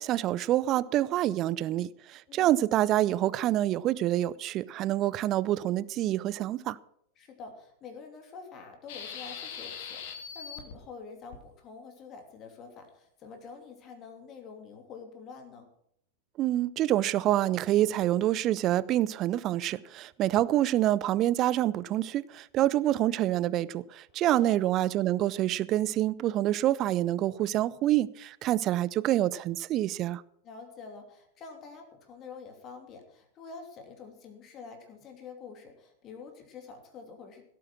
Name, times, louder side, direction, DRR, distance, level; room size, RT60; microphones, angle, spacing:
voice 1, 0.0-6.8 16.4-30.2, right 13 dB, 35° right, 0.6 m, -27 dB
voice 2, 2.3-2.8 7.2-15.7 24.1-24.6 30.4-37.4, left 5 dB, 30° left, 2.9 m, -47 dB
sound 1, 8.9-10.8 11.3-11.4, left 7 dB, 50° left, 2.5 m, -41 dB
16.5 x 8.6 x 6.2 m
figure-of-eight pair, 90°, 0 cm